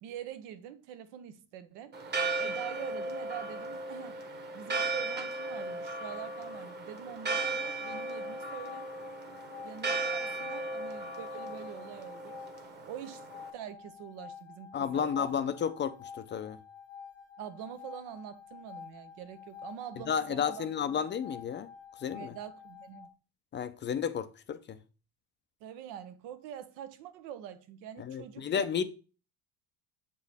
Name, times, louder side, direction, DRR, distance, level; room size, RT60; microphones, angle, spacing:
voice 1, 0.0-2.0 2.4-4.2 4.5-8.8 9.6-12.4 12.9-13.2 13.5-15.4 17.4-20.7 22.1-23.1 25.6-28.7, right 10 dB, 90° right, 1.0 m, -45 dB
Church bell, 1.9-13.5, right 3 dB, 25° right, 1.1 m, -36 dB
sound 1, 7.3-23.1, left 7 dB, 90° left, 1.2 m, -49 dB
voice 2, 14.7-16.6 20.1-21.7 22.0-22.3 23.5-24.8 28.0-28.8, left 7 dB, 30° left, 0.4 m, -32 dB
6.9 x 4.6 x 3.4 m
cardioid pair, 135°, 40 cm